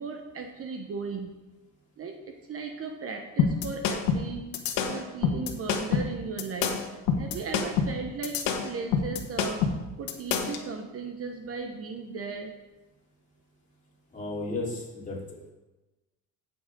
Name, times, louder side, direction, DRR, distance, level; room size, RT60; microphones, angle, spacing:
voice 1, 0.0-1.3 2.0-4.4 4.9-6.8 7.2-9.7 10.0-12.5, right 4 dB, 40° right, 5 dB, 1.0 m, -36 dB
sound 1, 3.4-10.6, left 6 dB, 80° left, 1.5 m, -27 dB
voice 2, 14.1-15.5, left 2 dB, 20° left, -4 dB, 3.2 m, -34 dB
16.5 x 7.2 x 3.8 m, 1.1 s
cardioid pair, 130°, 35 cm